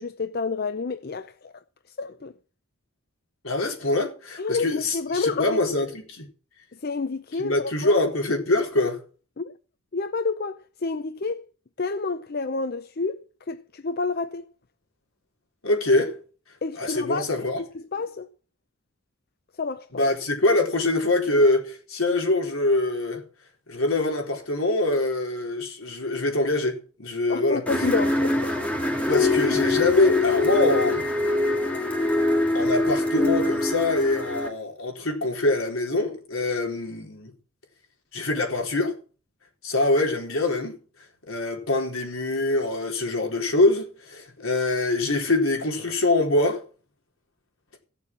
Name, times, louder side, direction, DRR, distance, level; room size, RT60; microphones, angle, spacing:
voice 1, 0.0-1.5 2.0-2.3 4.4-5.6 6.8-8.1 9.4-9.5 9.9-11.4 11.8-13.2 13.5-14.5 16.6-17.3 17.6-18.3 19.6-20.0 27.3-28.5, left 4 dB, 45° left, 0.6 m, -29 dB
voice 2, 3.4-6.3 7.4-9.0 15.6-16.1 16.8-17.6 19.9-23.2 23.7-27.9 29.1-31.0 32.5-37.3 38.1-38.9 39.6-40.8 41.3-46.6, left 2 dB, 75° left, 4.1 m, -24 dB
sound 1, 27.7-34.5, left 2 dB, 5° left, 2.2 m, -23 dB
16.0 x 7.0 x 7.3 m
head